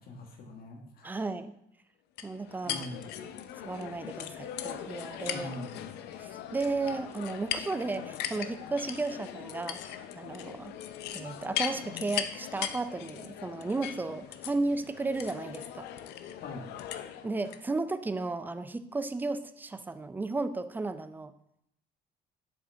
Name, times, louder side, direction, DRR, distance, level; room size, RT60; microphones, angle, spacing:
voice 1, 0.0-1.2 2.6-3.2 5.3-5.9 16.4-16.7, left 2 dB, 65° left, 1 dB, 1.5 m, -43 dB
voice 2, 1.0-1.5 2.2-2.9 3.6-5.6 6.2-10.7 11.1-15.9 17.2-21.3, right 3 dB, 10° right, 11 dB, 0.4 m, -34 dB
sound 1, 2.2-17.6, left 10 dB, 80° left, 0.5 m, -39 dB
7.1 x 4.9 x 3.5 m, 0.78 s
cardioid pair, 110°, 17 cm